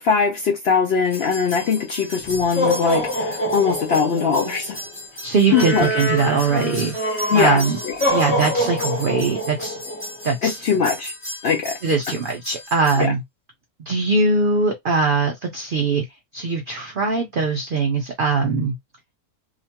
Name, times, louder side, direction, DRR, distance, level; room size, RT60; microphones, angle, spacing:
voice 1, 0.0-4.8 5.5-5.9 7.3-8.0 10.4-11.1 11.4-11.8 13.0-13.1, left 6 dB, 65° left, 0.6 m, -21 dB
sound 1, 1.1-13.0, equal, 10° left, 0.6 m, -27 dB
voice 2, 5.2-6.9 7.3-7.8 8.1-9.8 10.2-10.6 11.8-13.2 13.8-16.0 16.3-18.7, right 4 dB, 75° right, 0.4 m, -21 dB
2.8 x 2.2 x 2.8 m
omnidirectional pair, 1.6 m